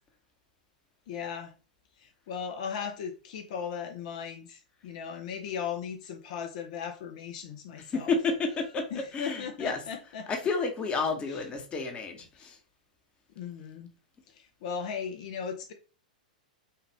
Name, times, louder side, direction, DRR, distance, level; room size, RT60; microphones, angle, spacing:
voice 1, 1.1-1.5 2.0-8.1 8.9-10.3 11.3-11.4 12.4-12.5 13.3-13.9 14.3-15.7, left 7 dB, 55° left, 4 dB, 0.9 m, -37 dB
voice 2, 7.9-9.8 10.3-12.6, left 4 dB, 25° left, 4 dB, 1.1 m, -31 dB
5.5 x 2.6 x 3.4 m, 0.35 s
hypercardioid pair, 115°, 5 cm